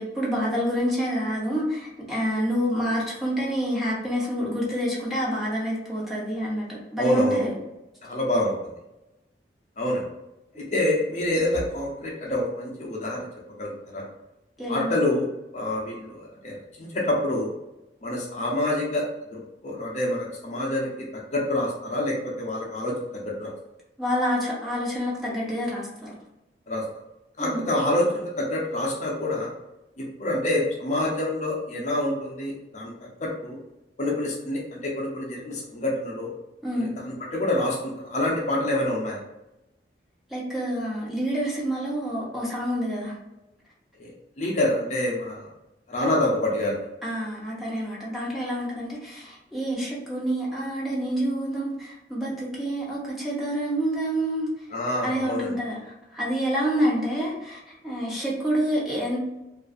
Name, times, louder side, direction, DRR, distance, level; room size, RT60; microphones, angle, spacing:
voice 1, 0.0-7.5 14.6-15.0 24.0-26.1 27.4-27.7 36.6-36.9 40.3-43.2 47.0-54.5 55.0-59.2, equal, ahead, -6 dB, 0.7 m, -28 dB
voice 2, 7.0-7.4 8.0-8.7 9.8-10.0 10.5-13.3 13.6-14.0 14.7-15.3 15.5-17.5 18.0-19.0 19.3-20.9 21.3-23.5 26.7-26.8 27.4-29.5 30.0-33.6 34.0-36.3 36.7-39.2 44.0-44.1 44.4-45.5 45.9-46.8 54.7-55.5, left 1 dB, 40° left, -2 dB, 0.5 m, -27 dB
2.5 x 2.3 x 2.4 m, 0.95 s
head